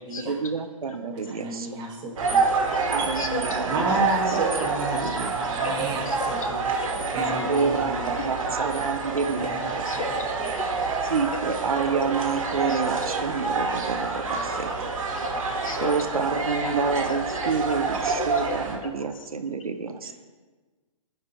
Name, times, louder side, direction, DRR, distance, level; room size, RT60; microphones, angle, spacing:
voice 1, 0.3-1.7 2.9-4.4 5.0-5.3 7.4-9.8 11.1-14.9 15.8-20.1, right 5 dB, 85° right, 8 dB, 0.8 m, -29 dB
voice 2, 1.0-2.6 3.0-8.2 9.3-10.0 14.3-15.2 19.8-20.1, right 2 dB, 25° right, -3 dB, 1.5 m, -33 dB
sound 1, 2.2-18.8, right 4 dB, 70° right, 1.9 m, -27 dB
voice 3, 10.8-11.1 12.7-12.8 15.1-16.2 16.6-16.7 17.1-17.4 17.7-17.8 18.0-18.5 19.0-19.1, left 4 dB, 70° left, 5 dB, 1.5 m, -36 dB
14.5 x 5.0 x 4.4 m, 1.3 s
hypercardioid pair, 130°, 18 cm